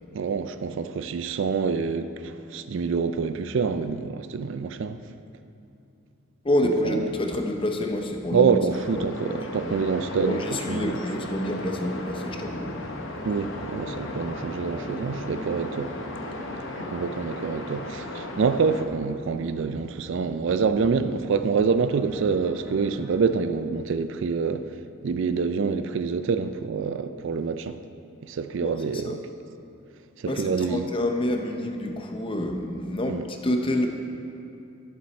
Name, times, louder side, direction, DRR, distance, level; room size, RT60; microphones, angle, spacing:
voice 1, 0.1-5.0 6.8-7.1 8.3-11.0 13.3-15.9 16.8-24.7 25.0-27.8 28.2-29.2 30.2-30.9 33.1-33.2, right 5 dB, 55° right, 0.3 m, -26 dB
voice 2, 6.4-8.6 8.9-9.8 10.3-12.9 28.6-29.2 30.3-33.9, left 1 dB, 25° left, 0.6 m, -28 dB
sound 1, 8.7-18.9, left 1 dB, 60° left, 0.8 m, -36 dB
sound 2, 10.7-23.2, left 1 dB, 5° right, 0.9 m, -45 dB
11.5 x 7.1 x 4.3 m
head